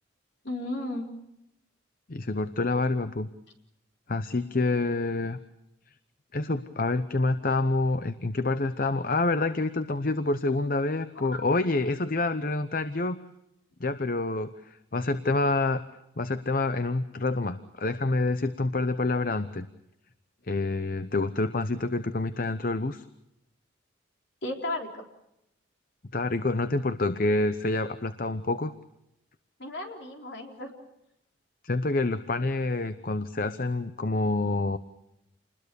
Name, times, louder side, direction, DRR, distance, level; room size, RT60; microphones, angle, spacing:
voice 1, 0.4-1.1 24.4-24.9 29.6-30.7, left 1 dB, 60° left, 2 dB, 4.1 m, -34 dB
voice 2, 2.1-3.3 4.1-5.4 6.3-13.2 13.8-15.8 16.2-19.7 20.5-23.0 26.1-28.7 31.6-34.8, left 2 dB, 45° left, 11 dB, 0.8 m, -27 dB
28.5 x 21.0 x 6.9 m, 0.84 s
head